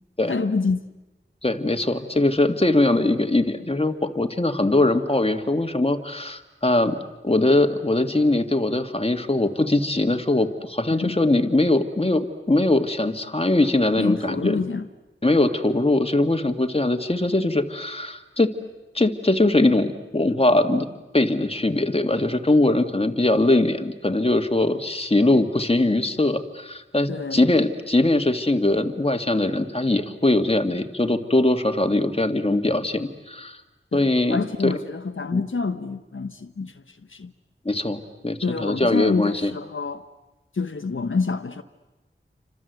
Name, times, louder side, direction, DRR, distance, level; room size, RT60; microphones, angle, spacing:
voice 1, 0.3-0.8 10.9-11.2 14.0-14.9 27.1-27.5 33.9-37.3 38.4-40.0 40.5-41.6, left 4 dB, 75° left, 1.1 m, -27 dB
voice 2, 1.4-7.0 7.2-14.6 15.2-18.5 18.9-20.9 21.1-33.6 33.9-34.7 35.3-35.4 37.7-39.5, left 2 dB, 30° left, 1.9 m, -21 dB
28.5 x 26.0 x 8.1 m
wide cardioid pair, 50°, 21 cm